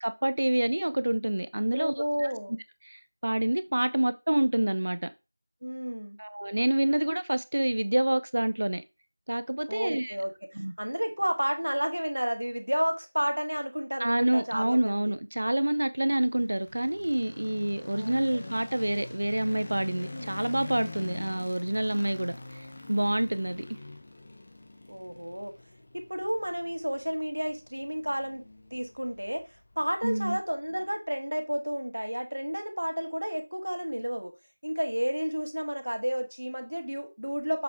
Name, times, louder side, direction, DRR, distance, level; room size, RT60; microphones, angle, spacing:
voice 1, 0.0-1.9 2.2-2.3 2.8-5.1 6.2-8.8 9.3-10.1 10.6-10.7 14.0-23.6 30.0-30.4, right 1 dB, 50° right, 0.5 m, -27 dB
voice 2, 1.7-2.5 5.6-6.2 9.7-15.1 17.9-18.5 20.1-20.3 24.9-25.5 25.9-34.3 34.6-37.6, equal, 75° right, 1.7 m, -31 dB
sound 1, 16.3-30.4, left 2 dB, 25° left, 0.8 m, -45 dB
6.8 x 4.4 x 3.7 m
figure-of-eight pair, 175°, 0 cm